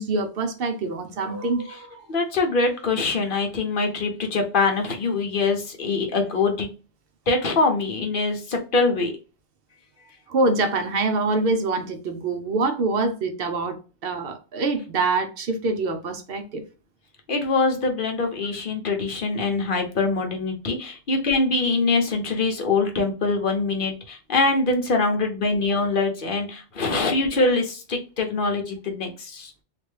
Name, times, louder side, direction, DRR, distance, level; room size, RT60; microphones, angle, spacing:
voice 1, 0.0-2.1 10.3-16.6, right 3 dB, 60° right, 0.7 m, -25 dB
voice 2, 2.1-6.7 7.3-9.1 17.3-29.5, left 3 dB, 50° left, 0.8 m, -23 dB
3.2 x 2.5 x 3.2 m
omnidirectional pair, 1.3 m